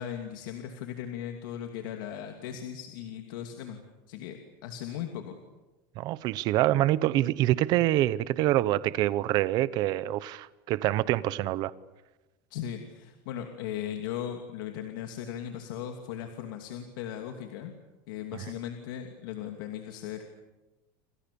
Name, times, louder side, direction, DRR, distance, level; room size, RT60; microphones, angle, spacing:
voice 1, 0.0-3.8 4.1-5.4 12.5-17.7 18.1-20.2, left 9 dB, 70° left, 2.8 m, -38 dB
voice 2, 6.0-11.7 18.3-18.4, right 15 dB, 40° right, 0.9 m, -26 dB
29.0 x 27.0 x 7.1 m
cardioid pair, 180°, 11 cm